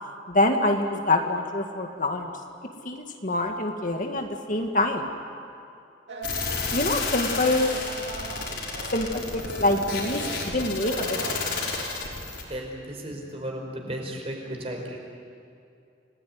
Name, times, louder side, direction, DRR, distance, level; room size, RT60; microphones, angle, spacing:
voice 1, 0.3-2.3 2.8-5.1 6.7-7.7 8.9-11.6, left 2 dB, 45° left, 4 dB, 1.8 m, -26 dB
sound 1, 6.1-11.4, right 2 dB, 60° right, 2.6 m, -39 dB
sound 2, 6.2-12.4, left 4 dB, 70° left, 5.7 m, -31 dB
voice 2, 12.4-15.0, right 1 dB, 30° right, 1 dB, 4.9 m, -35 dB
29.5 x 19.0 x 9.5 m, 2.5 s
head